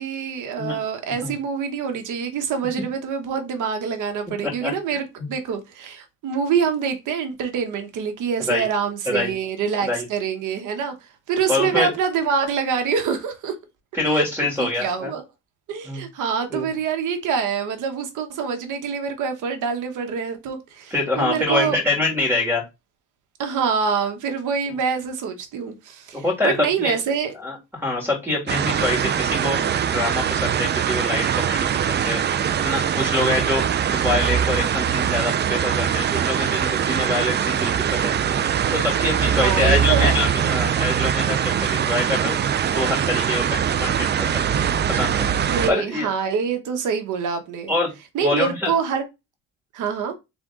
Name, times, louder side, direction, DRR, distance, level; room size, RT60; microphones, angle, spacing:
voice 1, 0.0-13.5 14.1-14.2 14.6-15.2 15.7-21.8 23.4-27.3 39.2-40.2 45.5-47.7 48.1-49.0 49.7-50.1, right 6 dB, 80° right, 1.1 m, -25 dB
voice 2, 4.4-4.7 5.2-5.3 8.5-8.6 9.0-9.3 9.8-10.0 11.5-11.9 13.9-15.1 15.8-16.0 16.5-16.7 20.9-22.6 26.1-27.0 27.4-32.2 32.6-38.4 38.7-44.5 44.9-46.1 47.7-47.9 48.2-48.7, left 2 dB, 5° right, 2.6 m, -25 dB
sound 1, 28.5-45.7, right 8 dB, 35° right, 0.4 m, -22 dB
3.6 x 3.5 x 3.7 m
cardioid pair, 90°, 30 cm